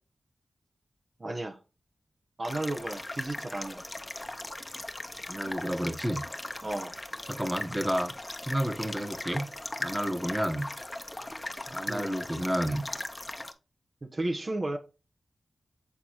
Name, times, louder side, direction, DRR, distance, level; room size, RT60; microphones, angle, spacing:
voice 1, 1.2-1.6 2.4-3.8 6.6-6.9 11.9-12.2 14.0-14.8, right 2 dB, 50° right, 1.0 m, -33 dB
sound 1, 2.4-13.5, left 1 dB, 25° left, 0.9 m, -39 dB
voice 2, 5.3-6.2 7.3-8.1 8.4-9.5 9.8-10.7 11.7-12.9, equal, 10° right, 1.3 m, -30 dB
8.3 x 4.0 x 3.0 m
cardioid pair, 45°, 0 cm